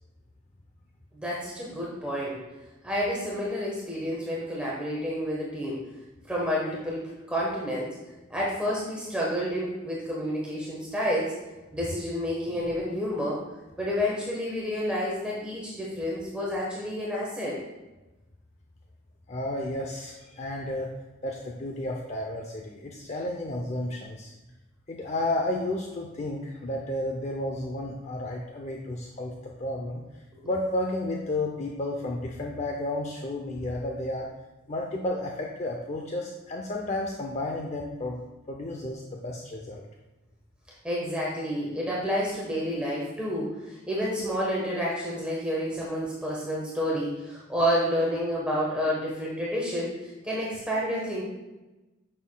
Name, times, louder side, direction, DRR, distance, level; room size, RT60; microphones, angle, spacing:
voice 1, 1.1-2.4 2.8-5.8 6.3-7.9 8.3-11.3 11.7-13.4 13.8-17.6 30.4-30.5 40.8-51.2, equal, 5° right, -5 dB, 1.2 m, -29 dB
voice 2, 19.3-20.9 21.2-24.3 24.9-30.0 30.4-34.3 34.7-39.9, left 1 dB, 35° left, 0 dB, 0.6 m, -32 dB
9.2 x 6.6 x 2.3 m, 1.1 s
head